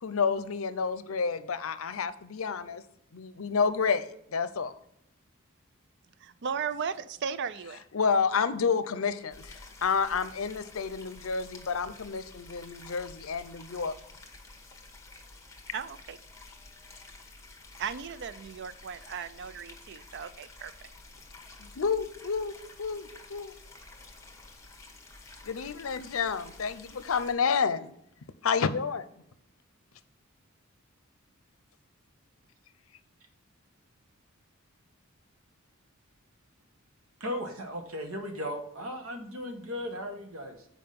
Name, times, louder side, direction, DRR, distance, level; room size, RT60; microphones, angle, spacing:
voice 1, 0.0-2.8 3.1-4.7 7.9-13.9 21.6-22.5 22.8-23.5 25.4-27.9 28.4-29.0, left 5 dB, 75° left, 14 dB, 0.6 m, -30 dB
voice 2, 6.2-7.8 15.7-16.2 17.8-20.7, right 7 dB, 55° right, 14 dB, 0.4 m, -36 dB
sound 1, 9.3-27.3, left 3 dB, 15° left, 1.2 m, -51 dB
voice 3, 37.2-40.7, equal, 80° right, 4 dB, 1.4 m, -36 dB
7.7 x 4.9 x 5.2 m, 0.75 s
head